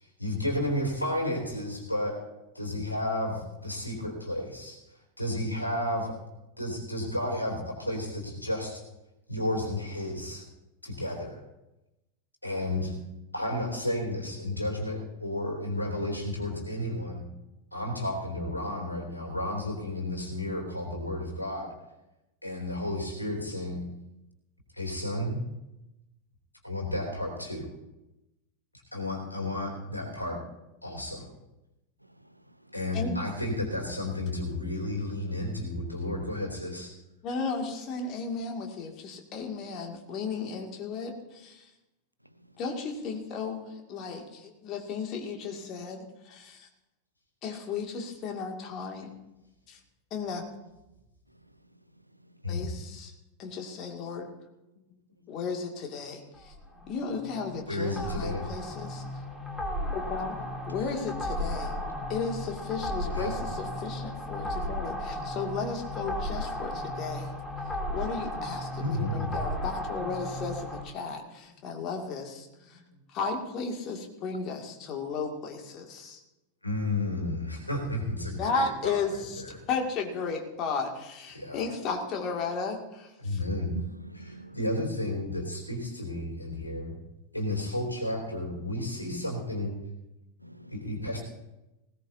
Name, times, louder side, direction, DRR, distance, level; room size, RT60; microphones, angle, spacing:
voice 1, 0.2-2.1 2.5-4.8 5.2-6.1 6.6-8.8 9.3-10.4 10.8-11.4 12.4-12.9 13.3-17.2 17.7-21.7 22.4-23.8 24.7-25.4 26.6-27.7 28.9-30.4 30.8-31.3 32.7-36.9 52.4-52.7 56.7-56.9 57.7-58.4 63.1-63.3 68.8-69.3 72.7-72.8 76.6-79.0 79.4-79.6 81.3-81.6 83.2-83.8 84.2-86.9 87.3-89.7 90.7-91.2, left 1 dB, 85° left, 0 dB, 3.1 m, -32 dB
voice 2, 32.2-32.8 52.2-52.3 83.4-84.6 90.4-90.9, right 1 dB, 90° right, 11 dB, 0.7 m, -47 dB
voice 3, 37.2-41.7 42.6-46.7 47.4-49.1 49.7-49.8 50.1-50.5 52.5-53.1 53.4-54.3 55.3-56.5 56.9-59.0 59.9-60.4 60.7-61.8 62.1-67.3 67.9-72.8 73.1-76.2 78.4-83.4, left 4 dB, 35° left, 2 dB, 2.2 m, -34 dB
sound 1, 56.3-70.8, left 1 dB, 5° left, 2.9 m, -35 dB
19.5 x 17.0 x 2.7 m, 0.96 s
figure-of-eight pair, 90°, 0 cm